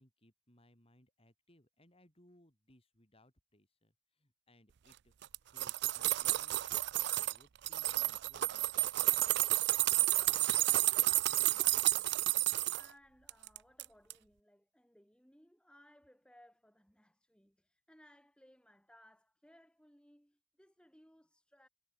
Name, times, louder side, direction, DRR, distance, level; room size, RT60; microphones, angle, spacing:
voice 1, 0.0-8.9, left 1 dB, 30° left, 7.0 m, -67 dB
sound 1, 5.2-7.4 7.7-12.9 13.3-13.8 14.1-14.2, right 17 dB, 55° right, 0.4 m, -31 dB
voice 2, 10.6-21.7, equal, 5° left, 7.9 m, -65 dB
head